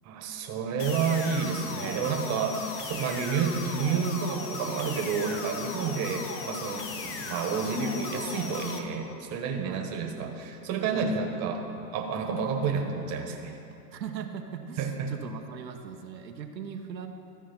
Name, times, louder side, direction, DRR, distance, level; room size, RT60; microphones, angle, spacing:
voice 1, 0.0-11.7 11.9-13.5 14.8-15.1, right 5 dB, 30° right, 3 dB, 1.2 m, -30 dB
sound 1, 0.8-8.8, left 4 dB, 25° left, 0.8 m, -37 dB
voice 2, 13.9-17.1, right 7 dB, 90° right, 4 dB, 0.9 m, -39 dB
13.5 x 4.6 x 5.9 m, 2.7 s
hypercardioid pair, 115°, 49 cm